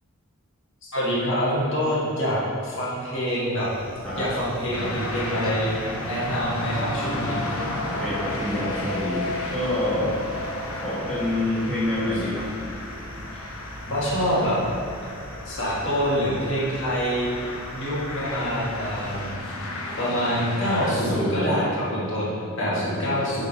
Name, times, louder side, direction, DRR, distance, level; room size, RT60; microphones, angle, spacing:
voice 1, 0.8-2.4 2.6-3.7 4.2-5.7 6.1-7.4 13.9-14.6 15.5-17.3 17.7-19.4 20.0-23.5, equal, 55° left, -7 dB, 1.8 m, -26 dB
sound 1, 3.6-19.4, right 1 dB, 40° right, 0.6 m, -41 dB
sound 2, 4.7-20.9, left 2 dB, 80° left, 1.0 m, -33 dB
voice 2, 7.8-10.2 10.8-12.5 13.3-13.5 20.8-21.6 22.6-23.2, left 1 dB, 5° left, -11 dB, 1.7 m, -27 dB
8.3 x 4.1 x 5.3 m, 2.6 s
head